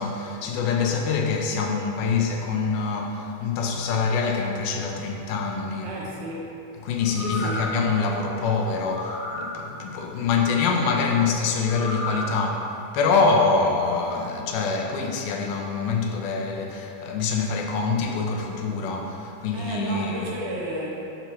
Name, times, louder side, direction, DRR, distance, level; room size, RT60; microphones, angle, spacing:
voice 1, 0.0-5.9 6.8-20.3, left 4 dB, 85° left, 2 dB, 2.1 m, -25 dB
voice 2, 5.8-6.5 7.2-7.6 19.5-21.1, right 1 dB, 75° right, -4 dB, 2.4 m, -32 dB
sound 1, 7.0-7.8 8.8-9.5 11.6-12.3 12.7-12.8, left 2 dB, 45° left, 1.3 m, -33 dB
6.7 x 3.0 x 5.6 m, 2.8 s
omnidirectional pair, 3.6 m